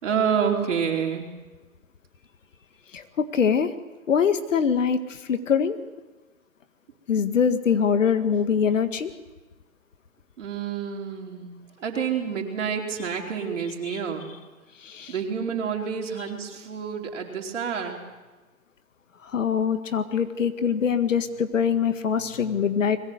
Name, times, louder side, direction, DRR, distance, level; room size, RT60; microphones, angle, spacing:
voice 1, 0.0-1.3 10.4-14.3 15.1-18.0, right 7 dB, 55° right, 1 dB, 4.5 m, -28 dB
voice 2, 2.9-3.7 4.1-5.8 7.1-9.1 14.8-15.1 19.3-23.0, left 7 dB, 60° left, 10 dB, 1.8 m, -23 dB
21.5 x 18.0 x 8.1 m, 1.2 s
hypercardioid pair, 165°, 43 cm